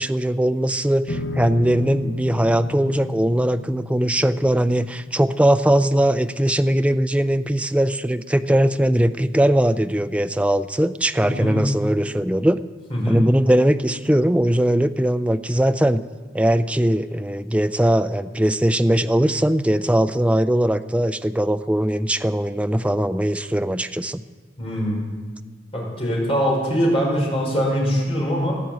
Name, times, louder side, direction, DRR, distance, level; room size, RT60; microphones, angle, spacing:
voice 1, 0.0-12.6 13.1-16.0 16.3-24.2, right 1 dB, 5° right, 11 dB, 0.4 m, -20 dB
sound 1, 1.1-7.6, left 3 dB, 60° left, 1.0 m, -34 dB
voice 2, 11.2-11.6 12.9-13.2 24.6-25.0 25.7-28.5, equal, 30° left, -3 dB, 5.3 m, -22 dB
16.0 x 10.5 x 8.1 m, 1.4 s
head